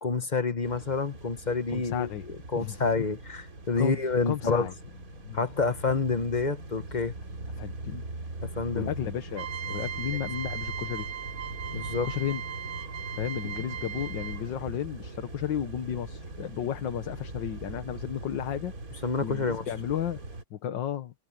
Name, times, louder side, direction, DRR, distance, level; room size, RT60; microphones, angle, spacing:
voice 1, 0.0-2.1 2.5-4.7 5.3-7.1 8.4-8.9 11.7-12.1 19.0-19.6, left 4 dB, 40° left, 0.6 m, -28 dB
sound 1, 0.6-20.4, right 2 dB, 45° right, 3.2 m, -41 dB
voice 2, 1.7-2.3 2.5-2.9 3.8-4.0 4.3-4.7 5.2-5.5 7.6-8.0 8.7-11.1 12.0-12.4 13.2-20.2 20.5-21.1, left 10 dB, 65° left, 1.7 m, -33 dB
sound 2, 9.3-14.6, right 9 dB, 90° right, 2.2 m, -38 dB
omnidirectional pair, 2.2 m